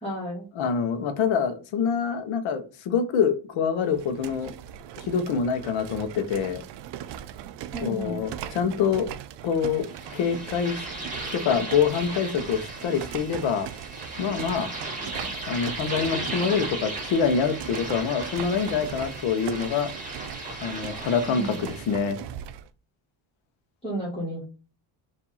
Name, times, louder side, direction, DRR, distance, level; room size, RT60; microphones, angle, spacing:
voice 1, 0.0-0.4 7.7-8.3 14.8-15.3 21.3-21.5 23.8-24.5, right 1 dB, 10° left, -7 dB, 1.6 m, -33 dB
voice 2, 0.6-4.5 5.0-6.6 7.8-9.1 9.4-10.8 11.3-13.7 14.2-14.7 15.5-19.9 20.6-22.2, left 6 dB, 75° left, 9 dB, 0.9 m, -26 dB
sound 1, 3.8-22.7, right 10 dB, 65° right, 0.5 m, -40 dB
sound 2, 9.8-22.1, right 2 dB, 15° right, 1.2 m, -36 dB
4.6 x 2.7 x 4.0 m, 0.35 s
cardioid pair, 155°, 47 cm